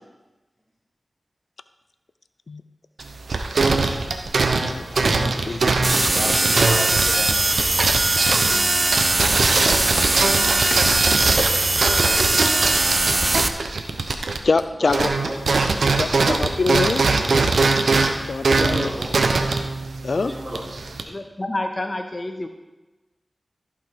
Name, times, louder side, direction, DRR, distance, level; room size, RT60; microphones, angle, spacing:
sound 1, 3.0-14.6 14.9-21.0, right 3 dB, 90° right, 0.8 m, -22 dB
voice 1, 4.6-6.5 10.4-11.6 14.4-15.1 16.0-17.0 18.3-18.9 20.0-20.3, left 4 dB, 75° left, 12 dB, 0.3 m, -26 dB
sound 2, 5.8-13.5, right 2 dB, 45° right, 0.7 m, -20 dB
voice 2, 6.1-7.4 14.8-15.4 18.6-19.2 20.2-20.6 21.0-21.1, equal, 15° right, -3 dB, 3.1 m, -32 dB
voice 3, 21.1-22.5, left 1 dB, 35° left, 6 dB, 0.7 m, -28 dB
15.0 x 5.7 x 4.7 m, 1.1 s
cardioid pair, 50°, 0 cm